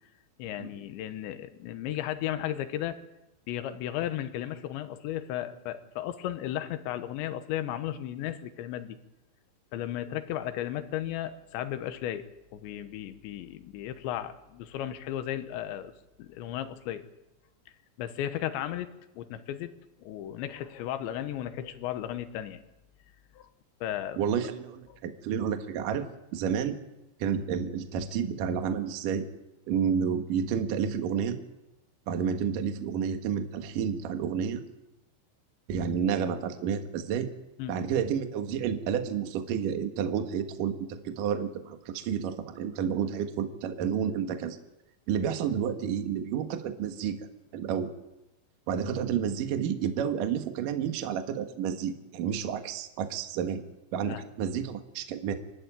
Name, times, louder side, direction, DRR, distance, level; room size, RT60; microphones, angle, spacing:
voice 1, 0.4-3.0 3.5-9.0 9.7-12.2 12.5-15.9 16.2-17.1 18.0-19.7 20.0-22.6 23.4-23.5 23.8-24.2 37.6-37.7 54.0-54.2, left 12 dB, 75° left, 10 dB, 3.3 m, -35 dB
voice 2, 24.2-26.8 27.2-29.3 29.7-31.4 32.1-34.6 35.7-37.3 37.7-44.6 45.1-47.2 47.5-47.9 48.7-53.6 53.9-55.3, right 7 dB, 60° right, 7 dB, 2.4 m, -30 dB
28.5 x 12.0 x 8.9 m, 0.96 s
omnidirectional pair, 5.6 m